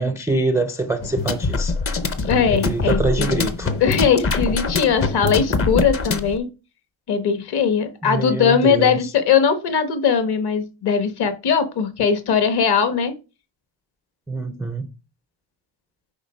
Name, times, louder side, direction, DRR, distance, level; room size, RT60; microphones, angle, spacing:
voice 1, 0.0-1.7 2.5-3.7 8.0-9.1 14.3-14.9, right 3 dB, 5° right, 0.3 m, -24 dB
sound 1, 1.0-6.4, left 3 dB, 30° left, 0.7 m, -23 dB
voice 2, 2.3-3.5 3.8-6.5 7.1-13.1, left 6 dB, 50° left, 1.3 m, -20 dB
9.7 x 3.7 x 5.1 m
cardioid pair, 180°, 49 cm